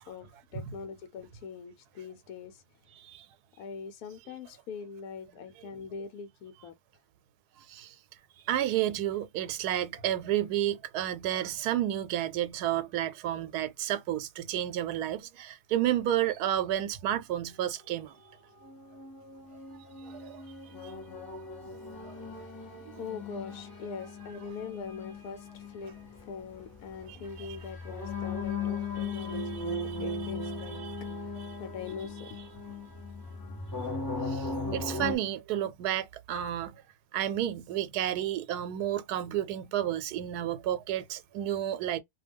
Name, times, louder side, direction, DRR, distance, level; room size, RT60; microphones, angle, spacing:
voice 1, 0.0-2.6 3.6-6.7 21.9-32.8, left 6 dB, 75° left, 1.1 m, -43 dB
voice 2, 3.0-3.3 7.7-7.9 8.5-18.2 20.0-20.4 21.3-21.4 21.7-21.8 22.0-22.1 22.7-23.0 27.1-27.6 29.0-31.0 31.4-31.6 34.3-36.8 37.1-42.0, right 12 dB, 90° right, 1.1 m, -32 dB
sound 1, 18.6-35.1, left 3 dB, 30° left, 0.4 m, -38 dB
2.6 x 2.2 x 3.4 m
omnidirectional pair, 1.6 m